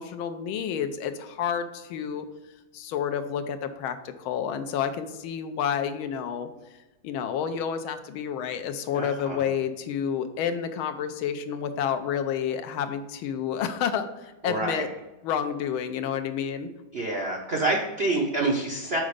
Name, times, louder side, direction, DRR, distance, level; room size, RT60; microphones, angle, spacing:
voice 1, 0.0-2.3 2.7-6.5 7.0-14.9 15.2-16.7, left 8 dB, 80° left, 9 dB, 1.4 m, -29 dB
voice 2, 8.9-9.4 14.5-14.9 16.9-19.0, right 2 dB, 75° right, 0 dB, 0.5 m, -27 dB
6.4 x 4.8 x 5.0 m, 1.0 s
omnidirectional pair, 2.3 m